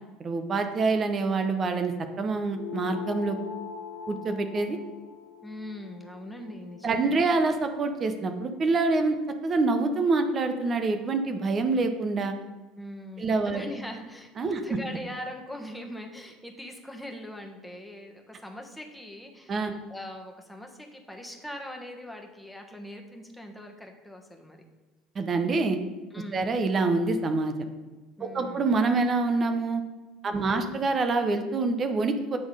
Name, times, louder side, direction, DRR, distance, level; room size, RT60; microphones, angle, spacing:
voice 1, 0.2-3.4 4.1-4.8 6.8-9.2 9.4-12.4 13.2-13.6 14.4-14.8 19.5-19.7 25.1-25.8 26.3-27.5 28.2-29.8 30.2-32.4, right 3 dB, 35° right, 7 dB, 0.7 m, -26 dB
sound 1, 2.5-7.3, left 7 dB, 75° left, 1.2 m, -41 dB
voice 2, 5.4-7.2 12.8-24.6 26.1-26.5 28.2-28.7 30.3-30.8, left 1 dB, 5° left, 2 dB, 1.3 m, -41 dB
8.3 x 3.6 x 4.9 m, 1.2 s
hypercardioid pair, 70°, 0 cm